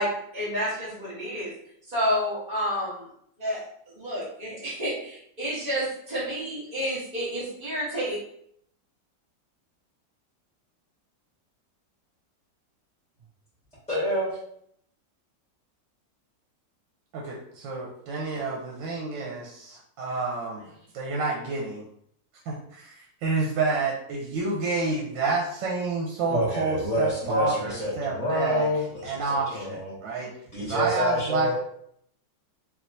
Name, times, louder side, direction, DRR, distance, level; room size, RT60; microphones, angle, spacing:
voice 1, 0.0-1.5 1.9-3.1 3.4-3.6 3.9-8.2, equal, 30° right, -13 dB, 1.0 m, -29 dB
voice 2, 13.9-14.3 20.9-21.1 26.3-30.0 30.5-31.6, equal, 5° left, -10 dB, 1.0 m, -28 dB
voice 3, 17.1-20.7 20.9-21.8 22.5-28.7 29.0-30.3 30.6-31.6, right 3 dB, 90° right, -2 dB, 1.3 m, -29 dB
3.4 x 2.8 x 2.6 m, 0.69 s
omnidirectional pair, 2.0 m